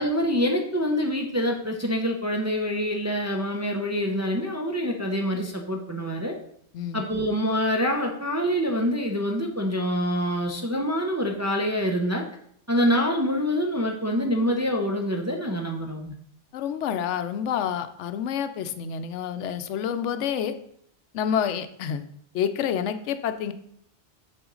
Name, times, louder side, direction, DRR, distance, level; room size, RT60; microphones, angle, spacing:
voice 1, 0.0-6.3 6.9-12.2 12.7-16.2, equal, 20° right, 2 dB, 0.4 m, -26 dB
voice 2, 16.5-20.6 21.1-22.1 22.3-23.5, left 8 dB, 90° left, 10 dB, 0.9 m, -28 dB
7.8 x 4.2 x 3.8 m, 0.69 s
omnidirectional pair, 1.2 m